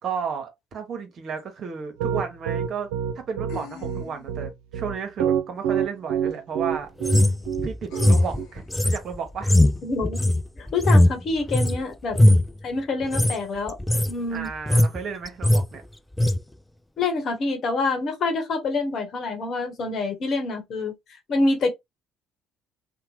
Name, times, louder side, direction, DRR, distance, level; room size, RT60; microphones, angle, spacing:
voice 1, 0.0-2.9 3.1-6.9 7.6-9.6 14.3-15.8, right 6 dB, 55° right, 0.9 m, -33 dB
sound 1, 1.4-1.5 3.5-4.4 6.3-6.4 7.9-8.6, left 7 dB, 75° left, 0.8 m, -42 dB
Piano, 2.0-8.5, right 8 dB, 85° right, 0.4 m, -26 dB
sound 2, 7.0-11.8 12.1-12.5 13.0-13.3 13.7-14.1 14.4-15.0 15.2-15.6 16.2-16.4, left 1 dB, 10° left, 0.3 m, -19 dB
voice 2, 9.8-10.3 10.6-12.2 12.6-13.7 14.1-14.5 17.0-20.9 21.3-21.7, left 3 dB, 55° left, 1.0 m, -26 dB
2.8 x 2.1 x 3.0 m
supercardioid pair, 70°, 0 cm